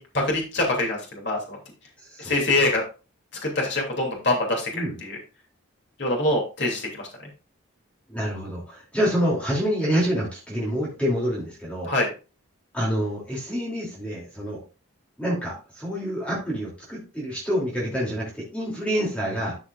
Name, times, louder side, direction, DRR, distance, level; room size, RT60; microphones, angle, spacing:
voice 1, 0.0-1.6 2.2-2.8 3.4-5.2 6.0-7.0 11.9-12.1, left 2 dB, 55° left, -1 dB, 2.8 m, -24 dB
voice 2, 2.1-2.6 4.7-5.0 8.1-11.9 12.7-14.6 15.2-19.6, equal, 5° left, -5 dB, 2.9 m, -27 dB
12.5 x 6.0 x 2.5 m, 0.32 s
head